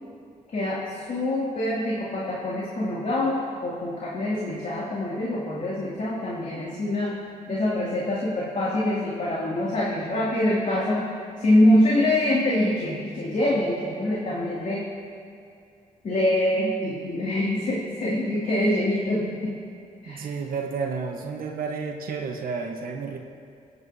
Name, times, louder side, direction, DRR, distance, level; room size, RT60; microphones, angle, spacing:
voice 1, 0.5-7.2 7.5-11.1 11.4-14.9 16.0-19.6 20.0-20.3, left 1 dB, 60° left, -6 dB, 2.5 m, -25 dB
voice 2, 20.1-23.2, right 5 dB, 80° right, 1 dB, 1.1 m, -31 dB
26.5 x 9.5 x 2.8 m, 2.4 s
cardioid pair, 65°, 15 cm